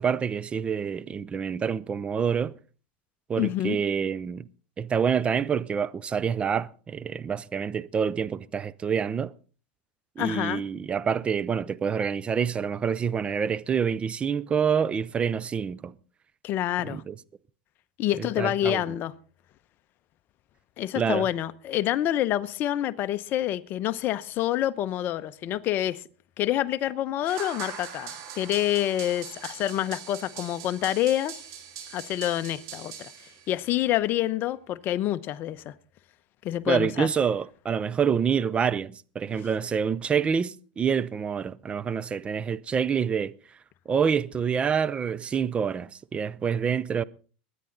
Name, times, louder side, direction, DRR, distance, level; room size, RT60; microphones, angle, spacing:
voice 1, 0.0-2.6 3.3-4.5 4.8-9.3 10.2-15.9 16.8-17.1 18.2-18.8 21.0-21.3 36.7-43.3 43.9-47.0, right 7 dB, 20° right, 0.5 m, -27 dB
voice 2, 3.4-3.8 10.2-10.6 16.4-17.0 18.0-19.1 20.8-26.0 26.4-31.3 31.9-33.1 33.5-35.7 36.4-37.1, left 13 dB, 40° left, 0.8 m, -27 dB
sound 1, 27.3-33.7, right 8 dB, 55° right, 3.2 m, -42 dB
22.0 x 9.7 x 3.9 m
supercardioid pair, 120°, 5 cm